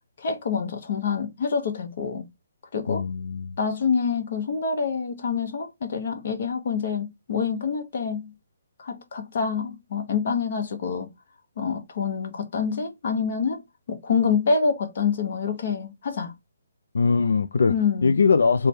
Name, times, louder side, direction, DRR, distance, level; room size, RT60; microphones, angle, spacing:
voice 1, 0.2-2.3 2.7-3.0 3.6-8.3 8.8-11.1 11.6-13.6 13.9-16.3 17.7-18.2, left 5 dB, 45° left, 0.8 m, -26 dB
voice 2, 2.9-3.6 16.9-17.7 18.0-18.7, left 5 dB, 80° left, 0.3 m, -21 dB
3.2 x 2.2 x 4.1 m
hypercardioid pair, 175°, 0 cm